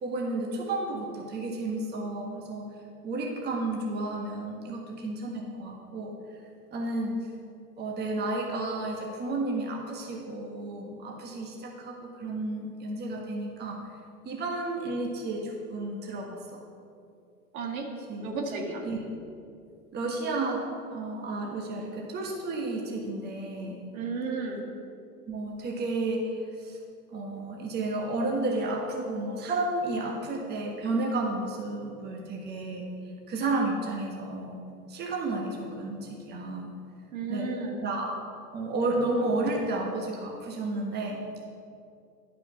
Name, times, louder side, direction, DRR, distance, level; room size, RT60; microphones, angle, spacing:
voice 1, 0.0-2.7 3.0-6.1 6.7-7.1 7.8-13.8 14.2-16.6 18.1-18.3 18.8-19.0 19.9-20.7 20.9-23.8 25.3-26.8 27.1-32.8 33.3-34.6 34.9-36.7 37.3-37.5 37.8-38.2 38.5-41.2, right 2 dB, 20° right, -1 dB, 1.3 m, -32 dB
voice 2, 17.5-17.9 18.2-18.8 23.9-24.7 37.1-37.8, right 4 dB, 65° right, 1 dB, 1.8 m, -33 dB
10.5 x 5.9 x 5.5 m, 2.5 s
hypercardioid pair, 110°, 45 cm